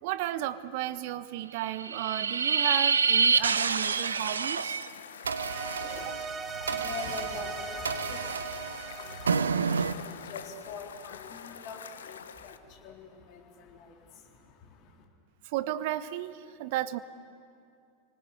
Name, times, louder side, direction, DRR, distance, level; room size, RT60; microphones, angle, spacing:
voice 1, 0.0-4.8 15.4-17.0, right 13 dB, 50° right, 15 dB, 0.9 m, -33 dB
sound 1, 1.6-4.9 5.2-9.9, right 5 dB, 70° right, 0.7 m, -28 dB
sound 2, 3.3-12.6, left 7 dB, 65° left, 1.0 m, -46 dB
sound 3, 5.3-10.6, right 5 dB, 20° right, 0.6 m, -40 dB
voice 2, 5.7-15.0, left 4 dB, 40° left, 1 dB, 3.7 m, -45 dB
30.0 x 19.5 x 8.3 m, 2.4 s
figure-of-eight pair, 90°, 0 cm